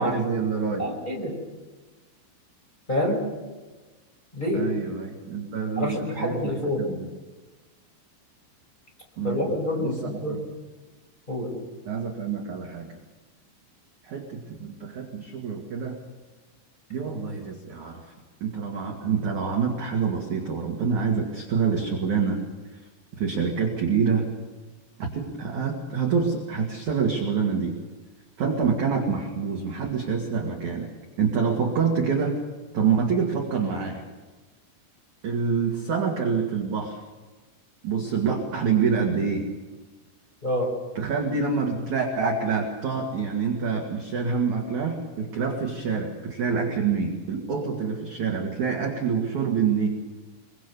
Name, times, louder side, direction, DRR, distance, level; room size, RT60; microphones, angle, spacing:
voice 1, 0.0-1.0 4.5-7.1 9.2-10.4 11.9-13.0 14.0-16.0 16.9-18.0 18.4-22.4 22.7-22.8 23.2-24.3 25.0-27.8 28.4-30.9 31.2-32.4 32.7-34.0 35.2-37.0 37.8-39.5 40.9-49.9, right 5 dB, 50° right, 1 dB, 2.7 m, -26 dB
voice 2, 0.8-1.3 2.9-3.2 4.3-4.6 5.8-6.8 9.2-10.4 11.3-11.6 40.4-40.7, left 1 dB, 10° left, -1 dB, 5.2 m, -27 dB
25.5 x 23.0 x 7.0 m, 1.2 s
omnidirectional pair, 5.8 m